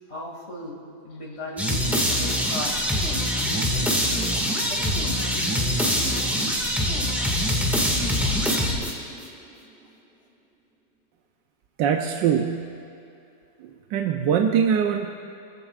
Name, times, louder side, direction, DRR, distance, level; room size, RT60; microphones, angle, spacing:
voice 1, 0.1-3.9 4.6-6.2, left 1 dB, 35° left, -2 dB, 2.5 m, -38 dB
sound 1, 1.6-9.2, equal, ahead, 1.6 m, -24 dB
voice 2, 11.8-12.7 13.6-15.1, right 7 dB, 75° right, 3 dB, 1.3 m, -23 dB
23.5 x 14.5 x 2.4 m, 2.6 s
omnidirectional pair, 2.0 m